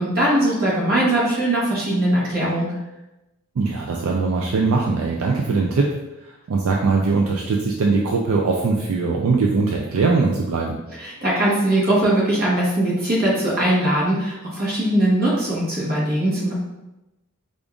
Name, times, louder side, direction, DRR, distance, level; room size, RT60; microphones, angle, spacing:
voice 1, 0.0-2.7 11.0-16.5, right 1 dB, 40° right, -6 dB, 1.2 m, -20 dB
voice 2, 3.6-5.9 6.2-10.8, right 4 dB, 70° right, -1 dB, 0.4 m, -21 dB
5.0 x 2.5 x 2.4 m, 0.97 s
head